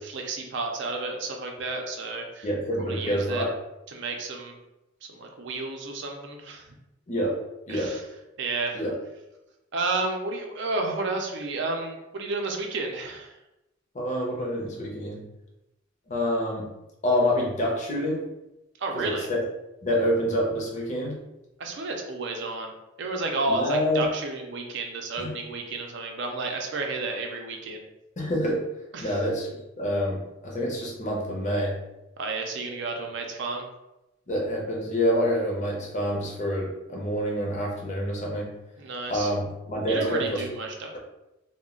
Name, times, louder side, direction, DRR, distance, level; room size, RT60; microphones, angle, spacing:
voice 1, 0.0-2.5 2.8-3.4 3.9-4.5 5.1-6.7 7.7-8.0 8.4-8.8 9.7-13.3 18.8-19.3 21.6-22.7 23.0-27.8 28.9-29.2 32.2-33.7 38.8-39.3 39.9-41.0, right 3 dB, 60° right, 2 dB, 0.5 m, -31 dB
voice 2, 2.4-3.5 7.1-7.4 7.7-7.9 8.7-8.9 13.9-15.2 16.1-16.7 17.0-18.2 18.9-19.4 19.8-21.2 23.5-24.0 25.2-25.3 28.2-28.6 29.0-31.8 34.3-38.5 39.1-40.4, equal, 40° left, -2 dB, 0.6 m, -27 dB
2.3 x 2.1 x 3.6 m, 0.95 s
head